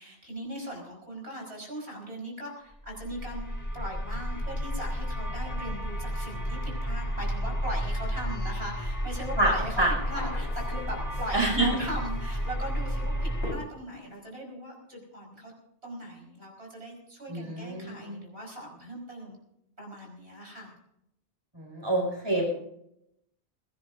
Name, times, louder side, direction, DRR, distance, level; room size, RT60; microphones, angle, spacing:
voice 1, 0.0-3.5 3.7-15.5 15.8-19.4 19.8-20.7, equal, 80° right, -1 dB, 5.5 m, -39 dB
sound 1, 2.9-13.5, equal, 15° left, 1.4 m, -32 dB
sound 2, 9.1-9.2 9.5-11.6 11.9-12.5 13.4-14.2, left 1 dB, 85° left, 5.8 m, -43 dB
voice 2, 9.4-9.9 11.3-11.7 17.3-18.2 21.5-22.5, right 2 dB, 25° right, -2 dB, 5.7 m, -27 dB
22.5 x 17.5 x 2.7 m, 0.79 s
omnidirectional pair, 1.1 m